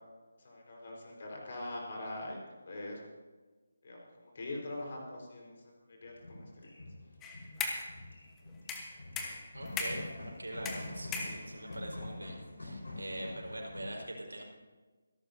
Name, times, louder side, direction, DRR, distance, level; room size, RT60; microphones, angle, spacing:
voice 1, 0.4-2.4 2.7-3.0 3.8-5.6 6.0-6.7, left 2 dB, 45° left, 0 dB, 4.6 m, -42 dB
sound 1, 6.1-13.8, left 2 dB, 60° left, 4.6 m, -46 dB
sound 2, 7.2-7.9 8.7-10.1 10.6-11.7, left 4 dB, 10° left, 1.2 m, -38 dB
voice 2, 9.5-14.4, right 1 dB, 70° right, 0 dB, 4.6 m, -43 dB
26.0 x 12.0 x 2.8 m, 1.3 s
figure-of-eight pair, 155°, 0 cm